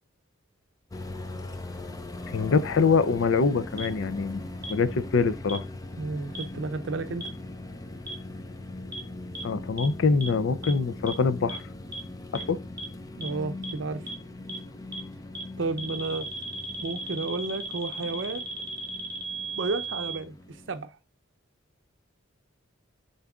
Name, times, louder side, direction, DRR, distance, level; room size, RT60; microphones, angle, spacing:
sound 1, 0.9-20.9, left 2 dB, 15° left, 0.5 m, -40 dB
voice 1, 2.3-4.4 4.7-5.6 9.4-11.6 12.3-12.6, left 4 dB, 70° left, 0.5 m, -24 dB
sound 2, 3.8-3.9 4.6-4.7 5.5-5.6 6.3-6.4 7.2-7.3 8.1-8.2 8.9-9.0 9.3-9.4 9.8-9.9 10.2-10.3 10.6-10.7 11.1-11.2 11.5-11.6 11.9-12.0 12.3-12.4 12.8-12.9 13.2-13.3 13.6-13.7 14.1-14.2 14.5-14.6 14.9-15.0 15.3-15.4 15.8-20.2, right 2 dB, 15° right, 1.6 m, -36 dB
voice 2, 6.0-7.3 13.1-14.1 15.6-16.3 16.8-18.4 19.5-21.0, right 3 dB, 60° right, 0.5 m, -32 dB
10.5 x 4.0 x 2.4 m
head